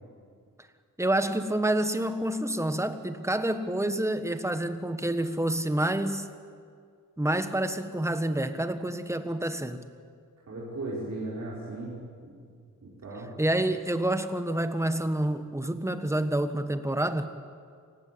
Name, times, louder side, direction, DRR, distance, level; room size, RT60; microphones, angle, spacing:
voice 1, 1.0-6.3 7.2-9.8 13.4-17.3, right 1 dB, 10° right, 9 dB, 1.4 m, -28 dB
voice 2, 10.5-12.0 12.2-12.5 12.8-13.3, right 2 dB, 55° right, -6 dB, 5.5 m, -37 dB
27.5 x 20.0 x 8.7 m, 2.2 s
wide cardioid pair, 135°, 32 cm